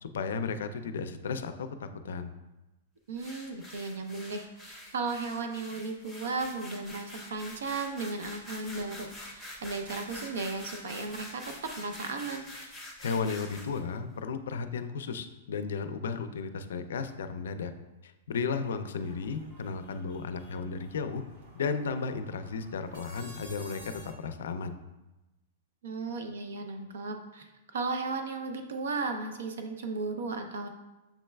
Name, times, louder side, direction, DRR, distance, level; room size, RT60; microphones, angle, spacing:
voice 1, 0.0-2.3 13.0-17.7 18.0-21.2 21.5-24.8, left 5 dB, 80° left, 9 dB, 0.4 m, -34 dB
voice 2, 3.1-12.4 25.8-30.7, right 3 dB, 85° right, 5 dB, 0.5 m, -35 dB
sound 1, 3.2-13.8, left 1 dB, 5° right, 0.6 m, -46 dB
sound 2, 19.0-24.1, right 1 dB, 50° right, 1.1 m, -52 dB
7.0 x 3.2 x 2.2 m, 1.0 s
supercardioid pair, 170°, 0 cm